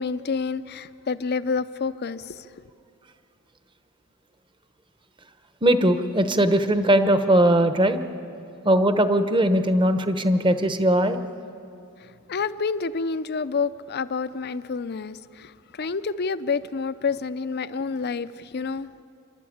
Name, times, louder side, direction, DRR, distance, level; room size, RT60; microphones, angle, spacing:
voice 1, 0.0-2.6 12.0-18.9, left 5 dB, 50° left, 14 dB, 0.6 m, -29 dB
voice 2, 5.6-8.0 8.6-11.2, right 1 dB, 20° right, 9 dB, 0.9 m, -20 dB
29.5 x 12.0 x 8.6 m, 2.5 s
head